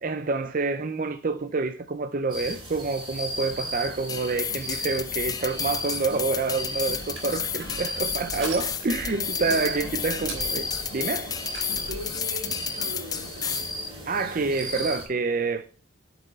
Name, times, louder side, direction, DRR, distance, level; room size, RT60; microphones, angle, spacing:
voice 1, 0.0-10.7 10.9-11.4 14.1-15.8, right 3 dB, 40° right, 0.5 m, -28 dB
sound 1, 2.3-15.0, left 1 dB, 25° right, 4.4 m, -36 dB
sound 2, 4.1-13.7, left 8 dB, 20° left, 0.4 m, -32 dB
Crushing, 6.9-12.1, right 2 dB, 60° right, 4.9 m, -40 dB
voice 2, 9.4-9.9 11.7-13.6, right 1 dB, 90° right, 2.9 m, -40 dB
11.5 x 5.5 x 4.1 m
head